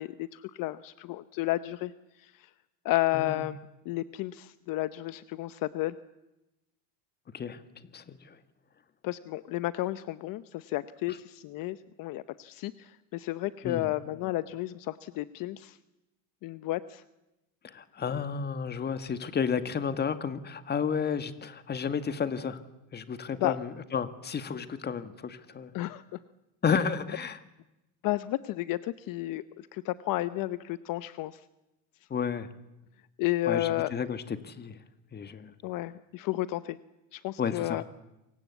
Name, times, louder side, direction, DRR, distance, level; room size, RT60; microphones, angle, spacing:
voice 1, 0.0-2.5 2.8-3.6 3.8-6.0 9.0-15.8 16.4-17.0 23.3-23.6 25.7-26.2 26.7-26.8 28.0-31.4 33.2-33.9 35.6-36.8 37.1-37.8, left 16 dB, 55° left, 13 dB, 0.9 m, -32 dB
voice 2, 7.9-8.3 13.6-13.9 17.6-22.6 22.9-25.7 26.6-27.4 32.1-32.5 33.5-34.8 35.1-35.5 37.4-37.8, left 6 dB, 25° left, 10 dB, 1.7 m, -32 dB
27.5 x 24.0 x 8.3 m, 0.96 s
cardioid pair, 130°, 41 cm